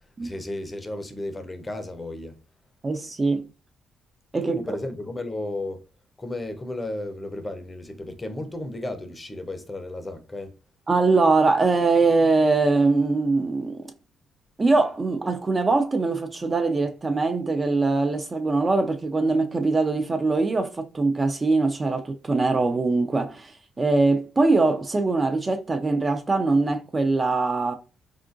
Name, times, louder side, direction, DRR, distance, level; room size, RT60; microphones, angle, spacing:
voice 1, 0.0-2.4 4.4-5.8 6.2-10.6, left 1 dB, 20° left, 0.5 m, -34 dB
voice 2, 2.8-3.5 4.3-4.6 10.9-13.9 14.6-27.7, right 3 dB, 30° right, 0.4 m, -22 dB
3.5 x 2.4 x 2.5 m
cardioid pair, 90°, 0 cm